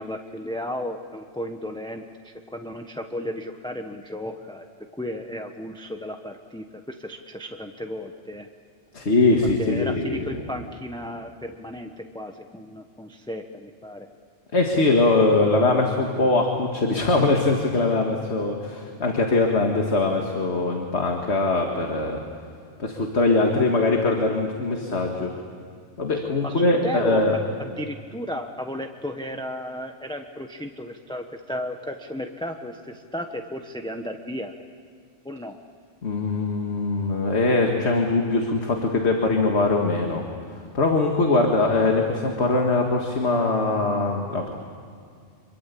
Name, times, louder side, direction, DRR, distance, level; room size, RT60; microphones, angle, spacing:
voice 1, 0.0-4.7 4.9-8.5 9.6-14.1 26.4-27.3 27.6-34.5 35.2-35.6, left 1 dB, 5° left, 4 dB, 1.0 m, -34 dB
voice 2, 8.9-10.3 14.5-22.2 22.8-25.3 26.0-27.4 36.0-40.3 40.7-44.5, left 3 dB, 65° left, 2 dB, 2.2 m, -22 dB
26.5 x 23.5 x 8.5 m, 2.2 s
omnidirectional pair, 1.2 m